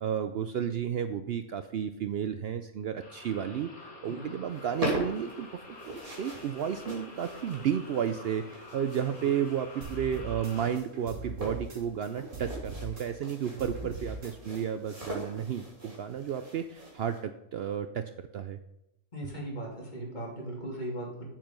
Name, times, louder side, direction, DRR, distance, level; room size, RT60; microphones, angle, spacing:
voice 1, 0.0-3.7 4.0-18.6, right 8 dB, 85° right, 10 dB, 0.5 m, -32 dB
sound 1, 3.0-10.8, left 2 dB, 65° left, 2.3 m, -48 dB
sound 2, 4.5-17.2, right 1 dB, 25° right, 2.9 m, -41 dB
sound 3, 9.8-12.1 12.3-14.6, right 3 dB, 55° right, 2.5 m, -41 dB
voice 2, 13.5-13.9 19.1-21.3, right 1 dB, 30° left, -3 dB, 3.0 m, -38 dB
7.5 x 7.3 x 5.2 m, 0.89 s
omnidirectional pair, 1.6 m